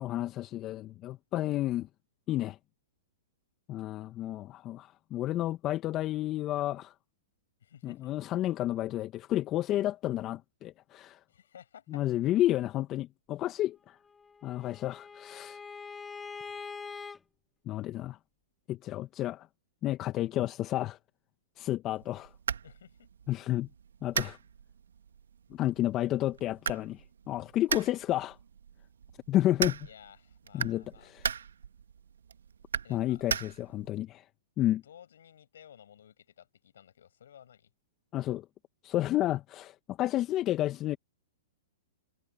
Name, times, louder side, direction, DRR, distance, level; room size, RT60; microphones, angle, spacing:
voice 1, 0.0-1.9 2.3-2.6 3.7-6.9 7.8-11.2 11.9-14.0 14.4-15.6 17.6-18.2 18.7-19.5 19.8-21.0 21.6-22.3 23.3-23.7 24.0-24.4 25.5-28.4 29.3-29.9 30.5-31.3 32.9-34.2 34.6-34.8 38.1-38.5 38.8-41.0, left 14 dB, 30° left, 1.4 m, -31 dB
voice 2, 7.6-8.1 11.3-12.0 22.6-23.1 29.9-31.1 32.8-33.2 34.8-37.7, left 9 dB, 75° left, 6.0 m, -55 dB
Bowed string instrument, 14.0-17.2, left 5 dB, 15° left, 2.3 m, -44 dB
sound 1, 21.9-33.9, right 7 dB, 80° right, 1.5 m, -39 dB
hypercardioid pair, 125°, 0 cm